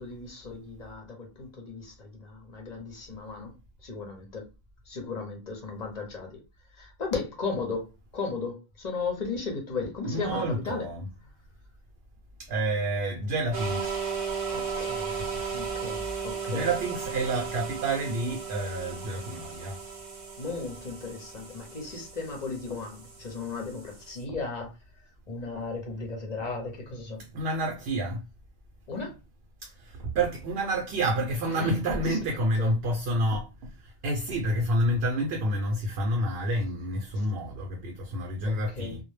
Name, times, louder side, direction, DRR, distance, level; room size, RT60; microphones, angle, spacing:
voice 1, 0.0-3.5 3.8-4.4 4.9-6.4 6.7-10.9 14.5-16.7 20.4-24.7 25.3-27.3 28.9-29.2 31.4-31.7 32.1-32.2 32.6-32.7 37.2-37.3 38.5-39.0, left 4 dB, 50° left, 0.7 m, -36 dB
voice 2, 10.1-11.1 12.4-14.0 16.5-19.8 27.3-28.2 29.6-39.0, right 1 dB, 75° right, 0.8 m, -29 dB
sound 1, 13.5-24.2, right 6 dB, 45° right, 0.6 m, -36 dB
2.1 x 2.1 x 3.1 m
omnidirectional pair, 1.0 m